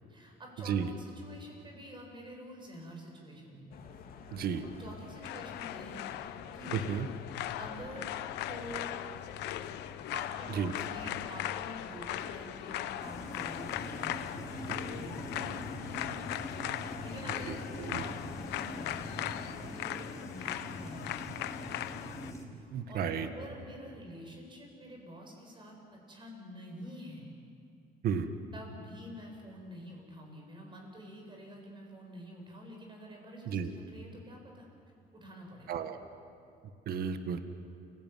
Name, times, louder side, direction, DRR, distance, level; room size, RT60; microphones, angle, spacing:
voice 1, 0.1-3.7 4.8-6.9 7.6-8.1 8.5-9.0 10.1-16.3 16.7-21.9 22.5-27.3 28.5-34.7 35.1-35.8, equal, 30° right, 1 dB, 7.7 m, -48 dB
sound 1, 3.7-19.8, left 5 dB, 60° left, 2.8 m, -49 dB
voice 2, 4.3-4.6 6.7-7.1 10.5-10.7 17.5-18.1 22.7-23.3 28.0-28.3 33.4-33.7 35.7-36.0 36.8-37.4, right 7 dB, 65° right, 9 dB, 1.7 m, -33 dB
sound 2, 5.2-22.3, left 13 dB, 85° left, 0.9 m, -39 dB
sound 3, 13.0-22.4, left 1 dB, 20° left, 4.4 m, -43 dB
29.5 x 17.5 x 9.3 m, 2.5 s
cardioid pair, 110°, 17 cm